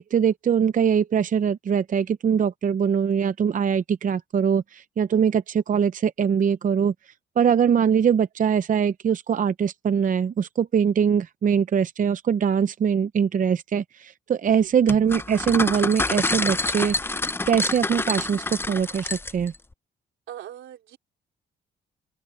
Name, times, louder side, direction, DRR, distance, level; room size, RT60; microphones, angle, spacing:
voice 1, 0.0-6.9 7.4-17.0 17.5-19.5, right 7 dB, 40° right, 0.7 m, -22 dB
sound 1, 14.9-19.6, left 2 dB, 10° left, 0.6 m, -27 dB
voice 2, 20.3-21.0, right 11 dB, 80° right, 3.1 m, -40 dB
open air
cardioid pair, 90°, 20 cm